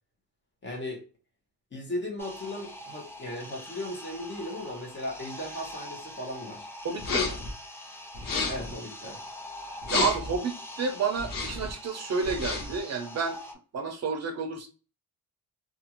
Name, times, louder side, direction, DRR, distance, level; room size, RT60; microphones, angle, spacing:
voice 1, 0.6-1.0 1.7-6.7 8.5-9.2, left 1 dB, 30° left, 1 dB, 0.8 m, -37 dB
sound 1, 2.2-13.5, equal, 5° left, 0.4 m, -43 dB
voice 2, 6.8-7.4 9.6-13.4 13.7-14.7, right 5 dB, 45° right, 5 dB, 0.6 m, -30 dB
sound 2, 7.0-7.5 8.1-8.7 9.8-10.4 11.2-11.7 12.2-12.8, left 4 dB, 65° left, 0.8 m, -30 dB
2.5 x 2.4 x 2.8 m, 0.35 s
wide cardioid pair, 150°, 36 cm